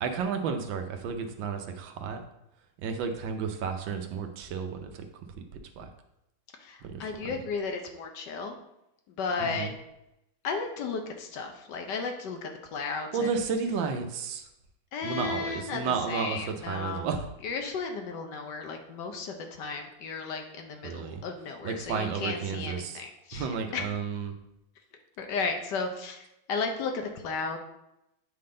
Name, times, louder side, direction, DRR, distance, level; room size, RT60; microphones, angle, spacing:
voice 1, 0.0-2.2 2.8-5.1 5.8-5.9 6.8-7.1 9.4-9.7 13.1-14.5 15.0-17.3 20.8-21.2 21.6-23.0 23.3-24.3, right 5 dB, 75° right, 5 dB, 1.4 m, -32 dB
voice 2, 6.6-8.6 9.1-9.7 10.4-13.3 14.9-17.1 17.4-23.9 25.2-27.6, left 4 dB, 70° left, 4 dB, 1.2 m, -34 dB
8.5 x 3.8 x 3.8 m, 0.87 s
omnidirectional pair, 2.1 m